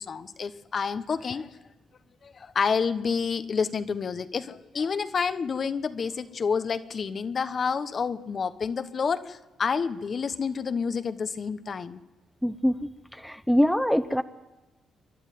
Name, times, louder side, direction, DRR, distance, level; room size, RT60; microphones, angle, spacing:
voice 1, 0.0-1.5 2.2-12.0, left 5 dB, 45° left, 12 dB, 1.1 m, -29 dB
voice 2, 12.4-12.8 13.2-14.2, equal, 5° left, 10 dB, 0.8 m, -23 dB
28.0 x 11.5 x 9.3 m, 1.1 s
cardioid pair, 90°, 0 cm